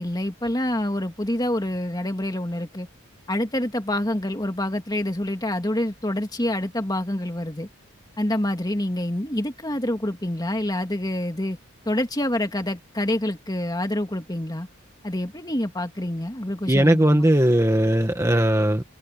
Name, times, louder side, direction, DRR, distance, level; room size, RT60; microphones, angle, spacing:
voice 1, 0.0-2.9 3.3-7.7 8.2-11.6 11.9-14.7 15.0-17.3, left 1 dB, 20° left, 2.3 m, -27 dB
voice 2, 16.7-18.8, right 1 dB, 15° right, 1.5 m, -18 dB
head